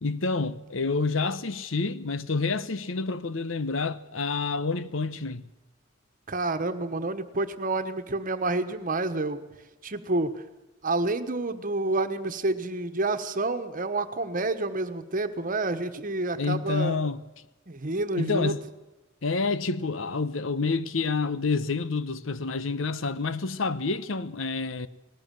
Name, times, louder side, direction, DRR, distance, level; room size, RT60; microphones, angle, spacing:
voice 1, 0.0-5.5 16.4-17.2 18.2-18.6 19.2-24.9, left 4 dB, 75° left, 1.0 m, -28 dB
voice 2, 6.3-9.4 9.8-10.3 10.8-17.0 17.7-18.5, right 2 dB, 45° right, 1.3 m, -29 dB
19.0 x 18.0 x 7.6 m
head